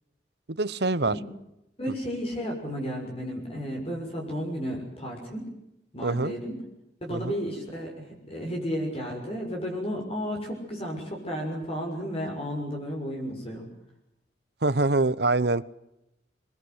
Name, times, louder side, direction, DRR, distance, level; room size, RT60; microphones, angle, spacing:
voice 1, 0.5-1.2 6.0-6.3 7.1-7.4 14.6-15.7, right 2 dB, 60° right, 18 dB, 1.0 m, -25 dB
voice 2, 1.8-5.5 5.9-6.6 7.0-13.7, equal, 35° left, 0 dB, 6.6 m, -33 dB
26.0 x 22.5 x 8.0 m, 0.86 s
head